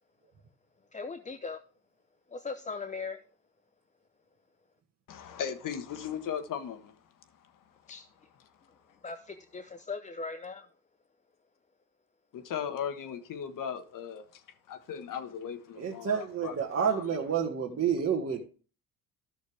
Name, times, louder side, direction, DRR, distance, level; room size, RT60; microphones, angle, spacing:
voice 1, 0.9-1.6 2.3-3.2 7.9-8.0 9.0-9.2 9.5-10.7, left 4 dB, 20° left, 0.7 m, -38 dB
voice 2, 5.1-6.9 12.3-14.4 14.7-17.1, left 8 dB, 55° left, 1.5 m, -37 dB
voice 3, 15.8-18.4, right 7 dB, 35° right, 1.6 m, -29 dB
13.0 x 6.5 x 3.4 m
supercardioid pair, 85°, 38 cm